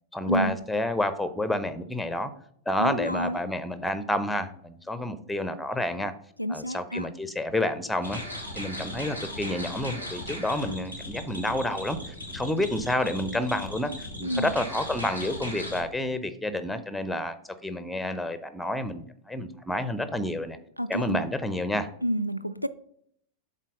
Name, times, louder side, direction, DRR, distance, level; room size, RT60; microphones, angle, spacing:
voice 1, 0.1-2.3 2.7-6.1 6.5-8.2 8.5-17.4 17.6-20.6 20.9-21.9, left 1 dB, 5° left, 12 dB, 0.7 m, -29 dB
voice 2, 2.8-3.4 6.4-7.1 14.2-14.5 20.8-21.2 22.0-22.7, equal, 90° left, 10 dB, 0.3 m, -29 dB
sound 1, 8.0-15.8, left 1 dB, 85° right, 1.5 m, -38 dB
7.4 x 4.1 x 5.4 m, 0.67 s
figure-of-eight pair, 90°, 0 cm